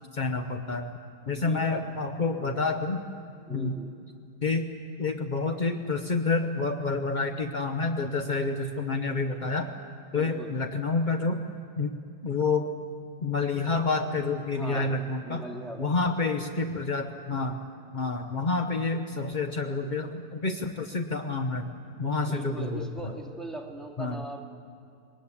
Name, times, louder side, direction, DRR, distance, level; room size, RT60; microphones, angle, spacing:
voice 1, 0.1-0.9 1.3-3.0 3.5-3.8 4.4-4.7 5.0-9.7 10.1-11.4 11.8-12.0 12.2-12.7 13.2-15.4 15.8-17.6 17.9-21.7 22.0-23.1 24.0-24.1, left 3 dB, 55° left, 5 dB, 0.5 m, -28 dB
voice 2, 1.3-1.8 2.3-2.7 3.5-4.0 10.1-10.5 14.5-15.9 16.2-16.3 16.7-16.9 21.9-24.5, right 2 dB, ahead, 0 dB, 2.3 m, -40 dB
22.0 x 20.0 x 8.5 m, 2.5 s
omnidirectional pair, 2.2 m